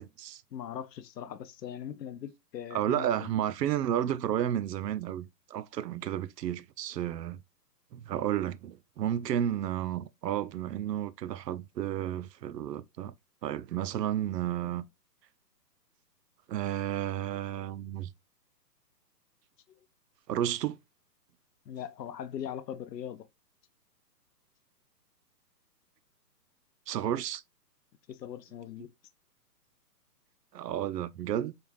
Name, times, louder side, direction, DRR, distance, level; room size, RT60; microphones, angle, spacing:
voice 1, 0.0-0.4 2.7-7.4 7.9-13.1 13.4-14.9 16.5-18.1 20.3-20.8 26.9-27.4 30.5-31.5, right 11 dB, 75° right, 0.5 m, -32 dB
voice 2, 0.5-3.4 14.6-14.8 19.7-19.8 21.7-23.3 28.1-28.9, left 9 dB, 75° left, 0.7 m, -40 dB
4.1 x 2.4 x 3.2 m
hypercardioid pair, 175°, 49 cm